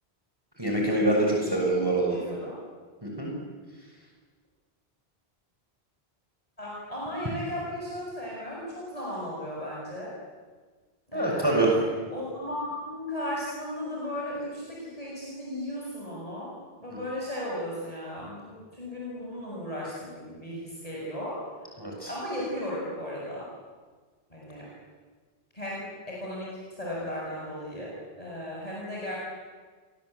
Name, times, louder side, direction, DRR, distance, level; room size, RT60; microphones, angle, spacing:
voice 1, 0.6-2.2 3.0-3.3 11.1-11.7 21.8-22.1, right 2 dB, 20° right, -1 dB, 6.6 m, -25 dB
voice 2, 2.1-2.6 6.6-10.1 11.1-16.5 16.8-21.5 22.1-23.5 24.3-24.7 25.5-29.2, left 1 dB, 35° left, -5 dB, 7.1 m, -36 dB
28.0 x 24.0 x 8.3 m, 1.4 s
omnidirectional pair, 1.1 m